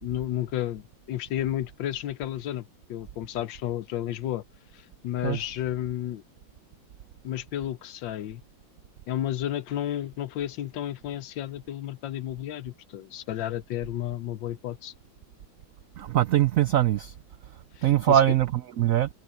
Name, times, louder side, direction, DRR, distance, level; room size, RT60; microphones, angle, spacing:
voice 1, 0.0-2.6 2.9-4.4 4.7-6.2 7.2-8.4 9.1-14.9 17.8-18.2, left 12 dB, 75° left, 1.5 m, -32 dB
voice 2, 16.0-17.1 17.8-19.1, right 12 dB, 85° right, 0.7 m, -22 dB
omnidirectional pair, 2.1 m